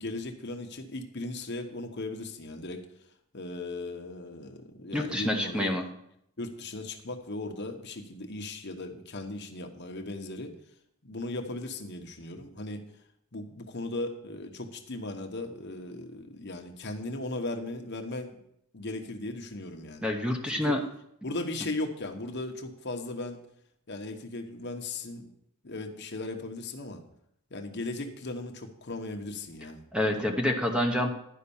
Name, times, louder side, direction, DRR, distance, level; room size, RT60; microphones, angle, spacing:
voice 1, 0.0-2.9 3.3-5.8 6.4-10.5 11.0-12.8 13.3-18.4 18.7-20.0 20.5-20.8 21.2-23.4 23.9-25.3 25.6-27.0 27.5-30.2, left 2 dB, 50° left, 4 dB, 1.1 m, -37 dB
voice 2, 4.9-5.9 20.0-20.8 29.9-31.1, left 1 dB, 5° right, 3 dB, 0.9 m, -27 dB
11.5 x 5.4 x 7.1 m, 0.75 s
head